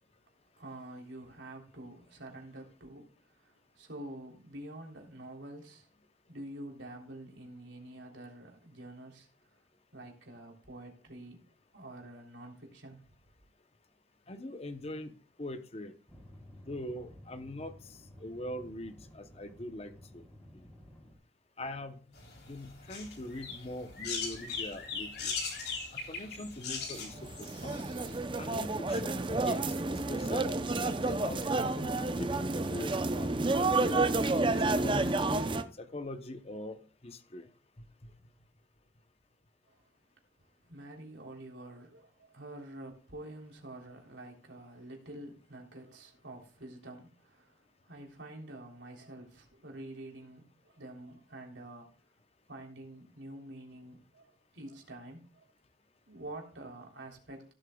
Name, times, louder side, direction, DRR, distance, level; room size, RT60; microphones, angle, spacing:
voice 1, 0.6-5.9 6.3-9.6 9.9-11.4 11.7-13.1 39.7-39.8 40.4-51.9 52.5-55.4 56.1-57.5, right 1 dB, 75° right, 3.4 m, -48 dB
voice 2, 14.3-15.9 16.7-20.3 21.6-22.0 22.5-25.3 25.9-27.9 28.4-33.3 33.9-34.1 34.6-35.5 35.8-37.5 38.0-38.1, left 1 dB, 30° left, 0.8 m, -42 dB
sound 1, 16.1-21.2, left 1 dB, 10° left, 3.8 m, -54 dB
sound 2, 22.2-28.2, left 5 dB, 55° left, 3.5 m, -39 dB
sound 3, 26.9-35.6, right 2 dB, 25° right, 0.6 m, -30 dB
17.0 x 8.2 x 2.3 m
head